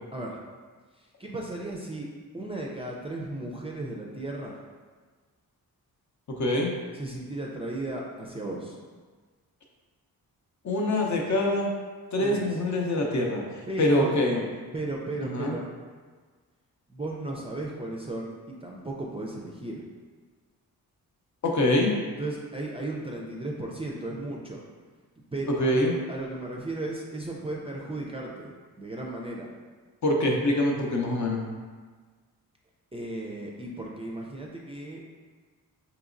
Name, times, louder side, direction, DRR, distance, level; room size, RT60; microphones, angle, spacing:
voice 1, 1.2-2.1 2.3-4.6 6.9-8.8 12.2-12.5 13.7-14.1 14.7-15.7 16.9-19.8 22.2-24.6 25.3-25.8 26.1-29.5 32.9-35.0, right 2 dB, 15° right, -3 dB, 0.4 m, -35 dB
voice 2, 6.3-6.7 10.6-11.7 12.1-13.4 13.8-14.4 15.2-15.5 21.4-21.9 25.5-25.9 30.0-31.4, left 1 dB, 50° left, 0 dB, 0.6 m, -24 dB
4.0 x 2.9 x 2.5 m, 1.4 s
wide cardioid pair, 95°, 37 cm